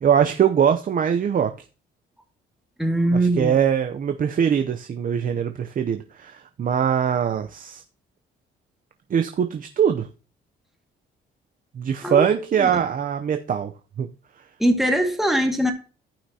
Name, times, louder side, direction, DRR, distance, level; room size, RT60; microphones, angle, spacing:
voice 1, 0.0-1.5 3.1-7.8 9.1-10.1 11.8-13.7 14.0-14.1, right 8 dB, 45° right, 0.6 m, -22 dB
voice 2, 2.8-3.5 12.0-12.8 14.6-15.7, right 1 dB, ahead, 1.9 m, -22 dB
14.5 x 5.7 x 2.8 m
cardioid pair, 90°, 20 cm